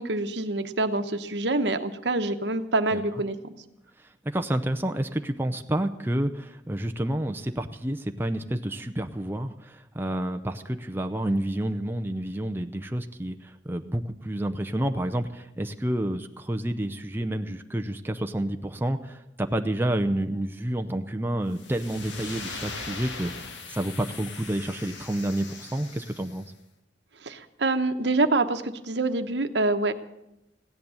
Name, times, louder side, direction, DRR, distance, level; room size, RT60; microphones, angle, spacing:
voice 1, 0.0-3.3 27.2-29.9, right 2 dB, 70° right, 8 dB, 1.0 m, -26 dB
voice 2, 4.2-23.3 23.7-26.5, right 1 dB, 10° right, 6 dB, 0.6 m, -29 dB
sound 1, 21.5-26.5, left 4 dB, 90° left, 1.8 m, -40 dB
16.0 x 10.5 x 7.1 m, 0.89 s
head